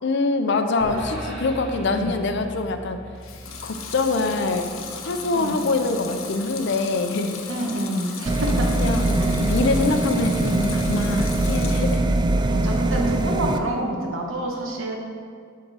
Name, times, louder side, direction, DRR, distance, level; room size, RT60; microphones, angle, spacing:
voice 1, 0.0-3.0 3.6-4.7 5.0-7.5 8.7-12.0, left 3 dB, 60° left, 7 dB, 0.5 m, -24 dB
sound 1, 0.8-7.2, right 1 dB, 40° right, 1.8 m, -39 dB
Water tap faucet / Sink (filling or washing) / Liquid, 3.2-12.1 12.5-13.2, left 5 dB, 80° left, 0.8 m, -37 dB
voice 2, 7.5-8.7 9.2-9.4 12.4-15.0, right 1 dB, 80° right, 0 dB, 1.2 m, -28 dB
sound 2, 8.3-13.6, right 2 dB, 20° right, 0.3 m, -22 dB
7.8 x 3.8 x 6.2 m, 2.2 s
head